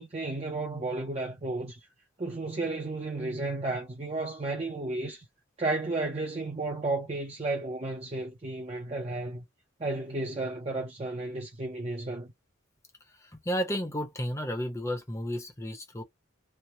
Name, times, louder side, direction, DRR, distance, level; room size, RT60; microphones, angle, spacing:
voice 1, 0.0-1.8 2.2-5.3 5.6-9.4 9.8-12.3, right 2 dB, 30° right, 0.6 m, -33 dB
voice 2, 13.2-16.0, equal, 15° left, 0.8 m, -32 dB
3.2 x 2.1 x 2.7 m
head